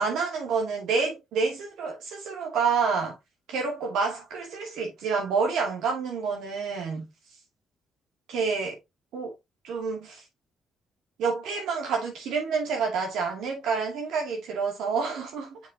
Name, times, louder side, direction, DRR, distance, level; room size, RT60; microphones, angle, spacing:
voice 1, 0.0-3.2 3.5-7.1 8.3-8.8 9.1-9.3 9.6-10.2 11.2-15.6, right 5 dB, 85° right, 2.4 m, -28 dB
7.0 x 5.2 x 2.8 m
cardioid pair, 90°, 0 cm